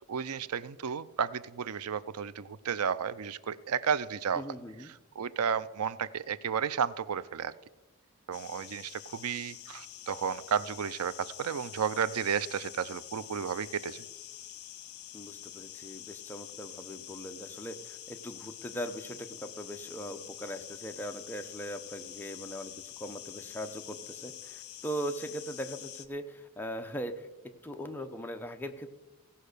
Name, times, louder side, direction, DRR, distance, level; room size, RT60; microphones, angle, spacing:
voice 1, 0.1-4.4 5.2-7.5 8.3-14.0, right 7 dB, 90° right, 17 dB, 0.5 m, -32 dB
voice 2, 4.3-4.9 15.1-27.3 27.6-28.9, equal, 10° left, 5 dB, 0.8 m, -40 dB
sound 1, 8.3-26.1, left 12 dB, 75° left, 0.8 m, -47 dB
16.5 x 5.5 x 6.7 m, 1.1 s
head